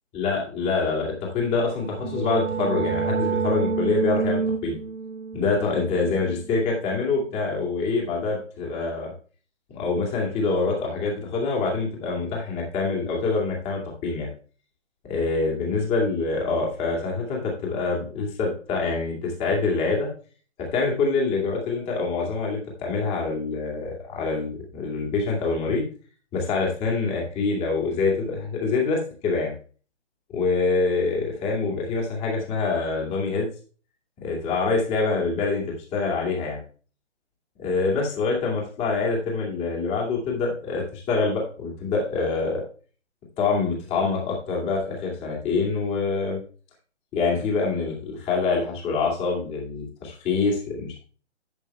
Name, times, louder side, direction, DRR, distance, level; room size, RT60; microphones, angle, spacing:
voice 1, 0.1-4.8 5.3-9.1 9.7-14.3 15.1-20.1 20.7-25.9 26.3-29.5 30.3-33.5 34.2-35.6 35.9-36.6 37.6-42.6 43.4-46.4 47.1-51.0, left 4 dB, 15° left, -1 dB, 2.5 m, -25 dB
sound 1, 1.5-7.1, right 5 dB, 90° right, 0.7 m, -29 dB
11.0 x 9.3 x 2.3 m, 0.40 s
figure-of-eight pair, 135°, 36 cm